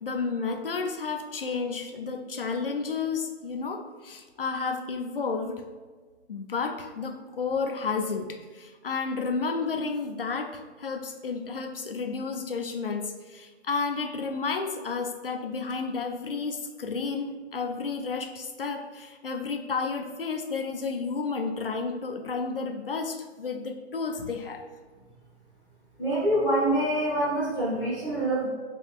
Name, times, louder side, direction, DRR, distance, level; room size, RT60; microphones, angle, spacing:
voice 1, 0.0-5.6 6.3-24.6, left 4 dB, 50° left, 5 dB, 0.5 m, -31 dB
voice 2, 26.0-28.5, right 1 dB, 5° left, -16 dB, 0.9 m, -25 dB
5.4 x 3.0 x 2.3 m, 1.4 s
figure-of-eight pair, 150°, 35 cm